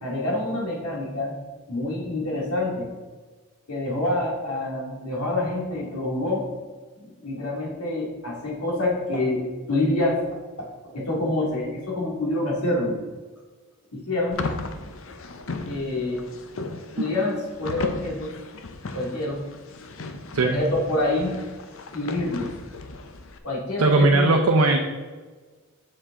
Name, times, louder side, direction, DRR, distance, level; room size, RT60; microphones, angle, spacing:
voice 1, 0.0-1.3 1.7-2.9 3.7-6.4 7.0-13.0 13.9-14.4 15.7-16.2 16.9-18.3 18.9-19.5 20.4-21.4 21.9-22.5 23.4-24.3, left 2 dB, 90° left, -3 dB, 2.2 m, -27 dB
sound 1, 14.3-23.4, left 3 dB, 65° left, 0.7 m, -36 dB
voice 2, 23.8-24.8, right 2 dB, 75° right, 2 dB, 0.6 m, -18 dB
7.3 x 6.4 x 3.7 m, 1.4 s
head